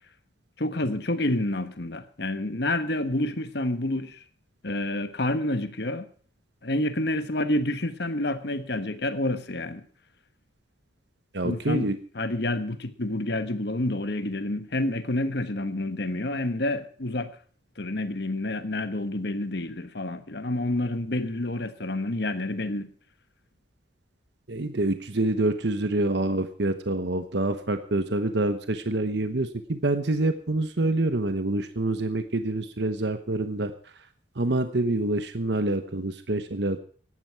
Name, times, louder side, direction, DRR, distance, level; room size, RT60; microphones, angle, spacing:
voice 1, 0.6-4.2 4.6-6.1 6.6-9.9 11.4-17.3 17.8-22.9, left 1 dB, 55° left, 11 dB, 1.3 m, -28 dB
voice 2, 11.3-12.0 24.5-33.7 34.4-36.8, right 2 dB, 60° right, 9 dB, 1.1 m, -26 dB
17.0 x 12.5 x 4.6 m, 0.44 s
head